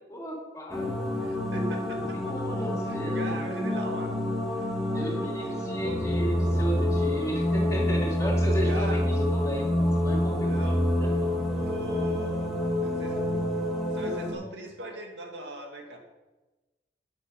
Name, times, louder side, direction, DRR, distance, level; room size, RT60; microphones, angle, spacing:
voice 1, 0.1-1.0 1.9-3.4 4.8-11.3, right 1 dB, 20° left, -2 dB, 2.9 m, -35 dB
sound 1, 0.7-14.3, left 1 dB, ahead, 2.7 m, -27 dB
voice 2, 1.2-2.4 2.9-4.2 4.5-4.7 5.2-5.3 5.8-6.0 8.7-9.0 10.4-10.8 11.5-12.5 12.8-13.2 13.9-16.0, right 1 dB, 70° right, 2 dB, 2.2 m, -39 dB
12.5 x 8.4 x 5.2 m, 1.2 s
head